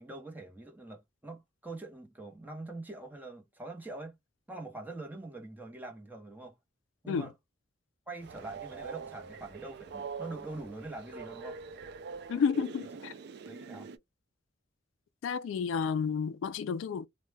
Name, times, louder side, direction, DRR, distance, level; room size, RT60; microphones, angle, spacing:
voice 1, 0.0-4.2 4.5-6.6 7.0-7.3 8.1-11.6 13.4-13.9, right 2 dB, 10° right, 0.7 m, -44 dB
Train, 8.2-14.0, right 5 dB, 60° right, 0.4 m, -44 dB
voice 2, 12.3-13.1 15.2-17.1, left 6 dB, 80° left, 0.3 m, -31 dB
2.2 x 2.0 x 3.2 m
head